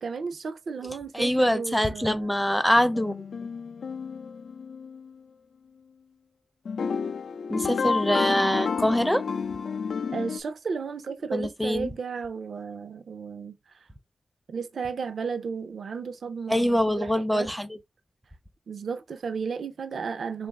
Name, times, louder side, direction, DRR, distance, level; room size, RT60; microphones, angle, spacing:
voice 1, 0.0-2.3 10.1-13.5 14.5-17.5 18.7-20.5, right 5 dB, 75° right, 0.6 m, -34 dB
voice 2, 1.1-3.2 7.5-9.2 11.3-11.9 16.5-17.7, equal, ahead, 0.5 m, -24 dB
sound 1, 2.8-5.1 6.7-10.4, left 5 dB, 90° left, 0.4 m, -30 dB
3.8 x 2.5 x 3.3 m
wide cardioid pair, 115°, 0 cm